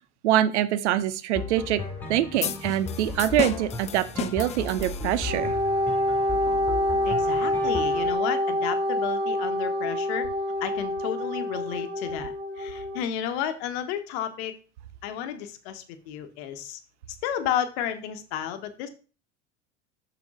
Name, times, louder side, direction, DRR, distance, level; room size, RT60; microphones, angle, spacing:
voice 1, 0.2-1.8 2.1-5.5, right 12 dB, 75° right, 15 dB, 0.7 m, -24 dB
sound 1, 1.3-8.1, left 3 dB, 5° left, 2.3 m, -36 dB
sound 2, 2.4-5.5, left 10 dB, 20° left, 0.3 m, -34 dB
Wind instrument woodwind instrument, 5.3-13.0, left 1 dB, 25° right, 2.3 m, -26 dB
voice 2, 7.0-10.3 10.6-14.5 15.0-16.8 17.2-18.9, left 9 dB, 60° left, 10 dB, 1.1 m, -32 dB
6.1 x 5.4 x 3.7 m, 0.35 s
hypercardioid pair, 85°, 35 cm